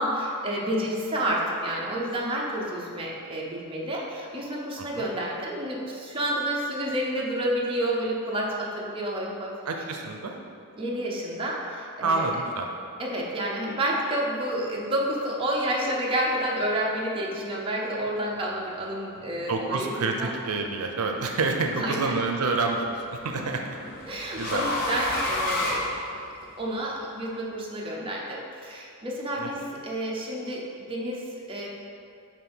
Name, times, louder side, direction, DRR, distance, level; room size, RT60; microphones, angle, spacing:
voice 1, 0.0-9.5 9.8-9.9 10.8-12.3 13.0-20.4 21.7-22.1 23.3-25.9 26.6-30.6 30.9-31.7, right 1 dB, 25° right, -3 dB, 0.8 m, -30 dB
voice 2, 9.7-10.4 12.0-12.7 19.5-23.0 23.2-23.8 24.4-24.6 29.4-29.5, right 3 dB, 85° right, 3 dB, 0.5 m, -27 dB
sound 1, 20.7-21.2 22.6-26.6, left 1 dB, 40° left, 0.9 m, -31 dB
7.3 x 2.6 x 5.4 m, 2.5 s
head